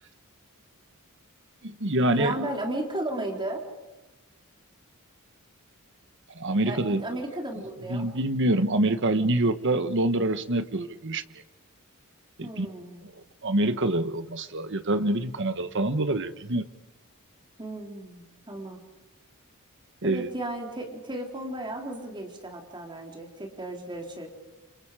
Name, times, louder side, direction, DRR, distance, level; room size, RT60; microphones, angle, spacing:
voice 1, 1.6-2.4 6.3-7.0 7.9-11.2 12.4-12.7 13.4-16.6 20.0-20.3, right 1 dB, 55° right, 11 dB, 1.4 m, -26 dB
voice 2, 2.1-3.6 6.7-8.1 9.4-9.5 12.4-13.0 17.6-18.8 20.0-24.3, right 1 dB, 20° right, 2 dB, 3.9 m, -34 dB
29.5 x 28.0 x 5.0 m, 1.1 s
head